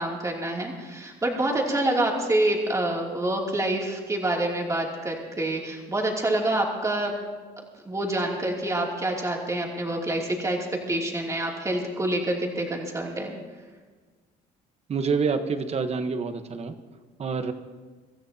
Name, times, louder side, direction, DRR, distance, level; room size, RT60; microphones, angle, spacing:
voice 1, 0.0-7.2 7.8-10.6 10.9-13.4, right 1 dB, 20° right, -1 dB, 2.8 m, -27 dB
voice 2, 14.9-16.7 17.2-17.5, right 5 dB, 40° right, 8 dB, 1.1 m, -27 dB
24.5 x 14.0 x 2.9 m, 1.4 s
cardioid pair, 110°, 17 cm